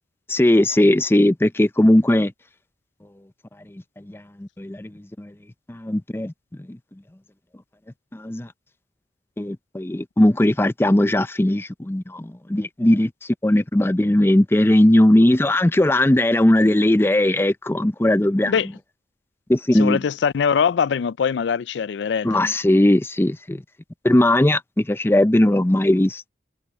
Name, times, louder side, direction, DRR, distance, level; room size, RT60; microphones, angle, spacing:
voice 1, 0.3-2.3 4.1-5.3 5.7-6.3 6.7-6.8 8.1-8.5 9.4-13.1 13.4-18.5 19.5-20.0 22.2-23.6 24.0-26.3, left 1 dB, 15° left, 0.5 m, -18 dB
voice 2, 19.7-22.4, left 6 dB, 90° left, 0.4 m, -22 dB
head